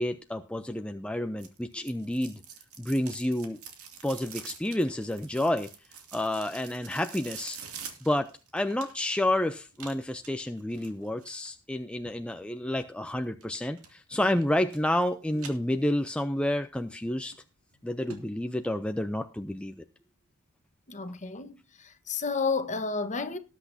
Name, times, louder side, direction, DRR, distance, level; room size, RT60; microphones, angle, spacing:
voice 1, 0.0-2.4 2.8-3.6 4.0-5.7 6.1-7.6 8.0-17.3 17.8-19.8, left 1 dB, 5° left, 0.5 m, -30 dB
sound 1, 1.4-9.2 9.7-11.5 13.4-13.9 14.2-15.0 15.3-16.2 16.6-16.7 17.3-17.4 17.7-17.8 18.1-18.2 18.6-18.7, right 7 dB, 70° right, 2.5 m, -46 dB
voice 2, 20.9-23.4, left 4 dB, 35° left, 1.2 m, -31 dB
19.0 x 8.2 x 2.7 m
head